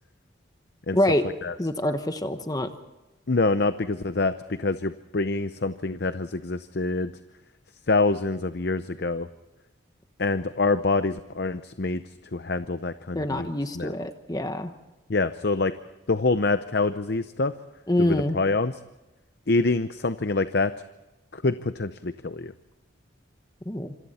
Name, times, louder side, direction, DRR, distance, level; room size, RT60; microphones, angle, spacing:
voice 1, 0.9-1.2 1.6-2.7 13.1-14.7 17.9-18.4 23.7-23.9, left 1 dB, 20° left, 8 dB, 1.1 m, -25 dB
voice 2, 3.3-7.1 7.9-9.3 10.2-12.0 12.3-13.5 13.7-13.9 15.1-15.8 16.1-17.5 18.0-18.7 19.5-20.7 21.3-22.5, left 3 dB, 55° left, 11 dB, 0.7 m, -26 dB
26.5 x 26.0 x 4.3 m, 1.1 s
head